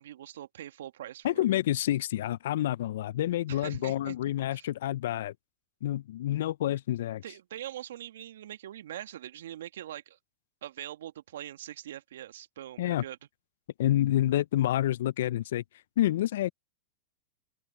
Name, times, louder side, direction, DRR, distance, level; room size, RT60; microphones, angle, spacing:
voice 1, 0.0-1.5 3.5-4.1 4.5-4.7 7.2-10.2 10.6-13.2, right 12 dB, 70° right, 2.0 m, -42 dB
voice 2, 1.2-5.3 5.8-7.2 12.8-13.0 13.8-15.6 16.0-16.5, left 13 dB, 65° left, 0.7 m, -28 dB
open air
hypercardioid pair, 95°, 0 cm